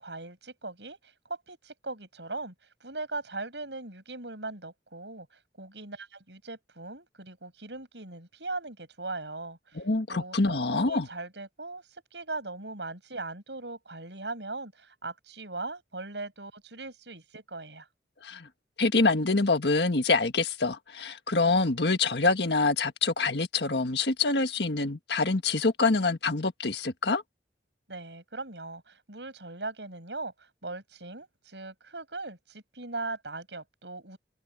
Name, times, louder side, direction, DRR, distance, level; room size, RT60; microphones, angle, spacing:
voice 1, 0.0-2.5 2.8-5.3 5.6-9.8 10.1-17.9 27.9-34.2, right 3 dB, 80° right, 7.8 m, -39 dB
voice 2, 9.7-11.1 18.2-18.5 18.8-27.2, left 3 dB, 70° left, 1.7 m, -26 dB
head